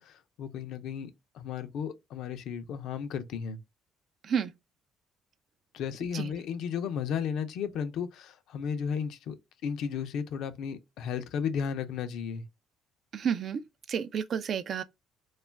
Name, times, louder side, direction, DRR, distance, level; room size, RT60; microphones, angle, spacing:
voice 1, 0.0-3.6 5.7-9.4 9.6-12.4, left 7 dB, 75° left, 0.4 m, -34 dB
voice 2, 13.1-13.6 13.9-14.8, right 7 dB, 55° right, 0.3 m, -30 dB
2.3 x 2.2 x 3.2 m
supercardioid pair, 80°, 0 cm